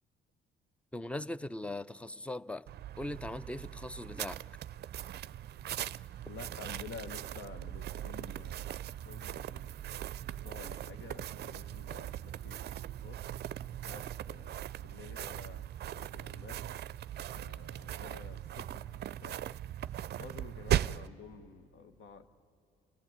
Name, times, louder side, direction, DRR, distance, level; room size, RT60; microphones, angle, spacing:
voice 1, 0.9-2.6 3.0-4.4, left 1 dB, 5° left, 17 dB, 0.5 m, -39 dB
sound 1, 2.7-21.1, right 12 dB, 55° right, 0.4 m, -39 dB
voice 2, 6.3-9.7 10.3-12.1 12.4-12.6 13.0-13.1 13.8-14.6 14.8-15.7 15.9-16.6 17.3-19.3 20.2-22.3, left 5 dB, 80° left, 9 dB, 1.3 m, -50 dB
27.5 x 15.0 x 8.7 m, 2.7 s
cardioid pair, 90°, 20 cm